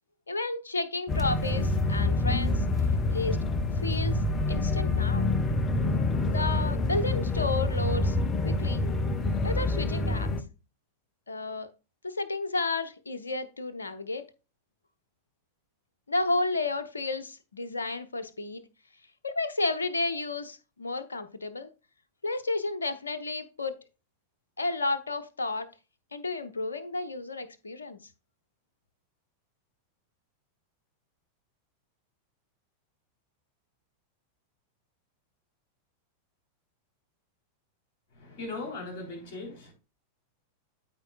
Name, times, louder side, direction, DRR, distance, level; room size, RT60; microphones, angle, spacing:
voice 1, 0.3-2.6 3.1-3.4 3.8-4.2 4.5-5.3 6.3-8.2 8.4-8.8 9.4-10.3 11.3-11.7 12.0-14.3 16.1-18.6 19.2-21.7 22.2-23.8 24.6-25.7 26.1-28.0, left 3 dB, 75° left, 0.8 m, -32 dB
sound 1, 1.1-10.4, left 2 dB, 25° left, 0.8 m, -27 dB
voice 2, 38.1-39.7, left 3 dB, 45° left, 3.7 m, -39 dB
13.5 x 4.7 x 2.4 m
figure-of-eight pair, 90°, 0 cm